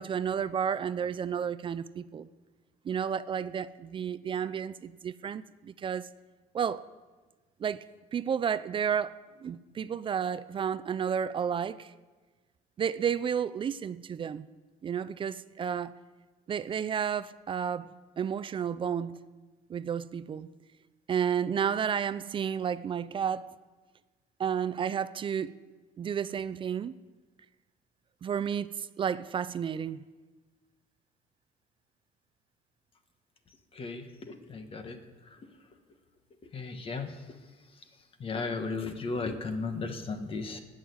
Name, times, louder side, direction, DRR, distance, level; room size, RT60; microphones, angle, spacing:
voice 1, 0.0-2.3 2.8-6.1 6.5-6.8 7.6-7.8 8.1-11.9 12.8-14.5 14.8-15.9 16.5-19.2 19.7-20.5 21.1-23.5 24.4-25.5 26.0-26.9 28.2-30.0, right 8 dB, 35° right, 0.4 m, -31 dB
voice 2, 33.7-35.0 36.5-37.1 38.2-40.6, left 4 dB, 35° left, 1.3 m, -35 dB
15.5 x 6.4 x 9.4 m
cardioid pair, 135°, 16 cm